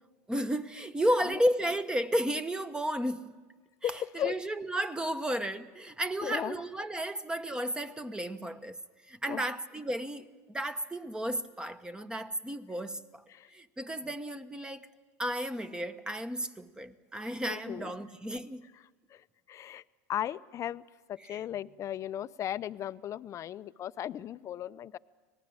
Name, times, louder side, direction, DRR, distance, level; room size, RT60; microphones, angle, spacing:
voice 1, 0.3-3.3 3.8-8.8 9.1-13.2 13.5-14.8 15.2-18.6 21.3-21.4, equal, 10° right, 1.2 m, -33 dB
voice 2, 3.8-4.4 6.2-6.6 9.3-9.5 13.3-13.5 17.5-17.9 19.1-19.8 20.1-20.8 21.1-25.0, left 11 dB, 40° left, 0.6 m, -36 dB
26.0 x 19.0 x 8.8 m
supercardioid pair, 105°, 8 cm